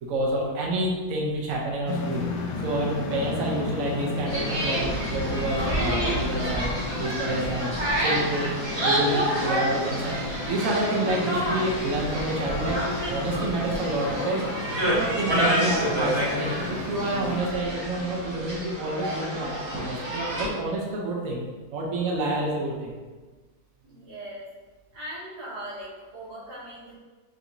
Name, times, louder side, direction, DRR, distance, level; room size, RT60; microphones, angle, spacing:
voice 1, 0.0-2.3 2.6-6.7 7.0-7.7 8.0-8.5 8.8-20.0 20.3-21.4 21.7-23.0, right 1 dB, 60° right, -2 dB, 1.1 m, -28 dB
sound 1, 1.8-17.4, left 3 dB, 80° left, 1.3 m, -34 dB
sound 2, 4.3-20.5, right 1 dB, 20° right, 1.1 m, -28 dB
voice 2, 23.8-24.5 24.9-27.0, right 1 dB, 90° right, -6 dB, 1.8 m, -39 dB
4.5 x 3.9 x 2.6 m, 1.3 s
omnidirectional pair, 1.8 m